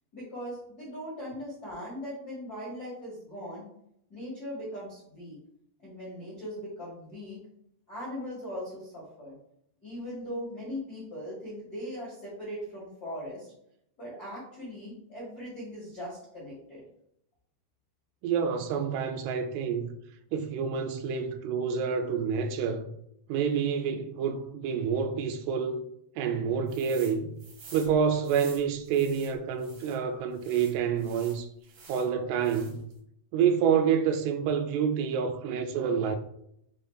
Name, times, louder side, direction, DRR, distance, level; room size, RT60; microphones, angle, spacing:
voice 1, 0.1-3.7 4.1-5.4 5.8-7.4 7.9-9.3 9.8-13.5 14.0-16.8, equal, 90° left, 0.8 m, -39 dB
voice 2, 18.2-19.9 20.3-22.9 23.3-25.8 26.2-27.4 27.7-31.5 31.9-32.8 33.3-36.2, right 7 dB, 85° right, 2.5 m, -28 dB
sound 1, 26.7-27.1 27.4-30.0 30.4-32.1 32.4-32.9, right 4 dB, 60° right, 2.9 m, -49 dB
7.0 x 3.2 x 2.3 m
omnidirectional pair, 4.7 m